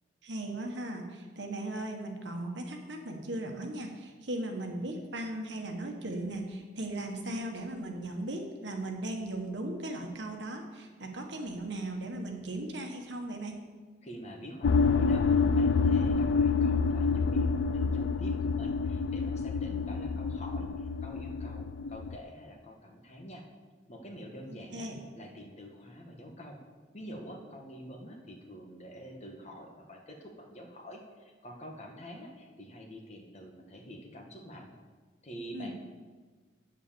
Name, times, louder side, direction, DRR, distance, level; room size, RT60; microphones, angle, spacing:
voice 1, 0.2-13.6 24.7-25.0 35.5-35.7, right 1 dB, 70° right, 3 dB, 1.4 m, -37 dB
voice 2, 14.0-23.4 23.9-24.9 25.1-26.6 26.9-34.7 35.2-35.7, equal, 35° left, 1 dB, 1.5 m, -46 dB
sound 1, 14.6-22.2, left 4 dB, 75° left, 0.3 m, -27 dB
8.3 x 7.4 x 6.9 m, 1.4 s
head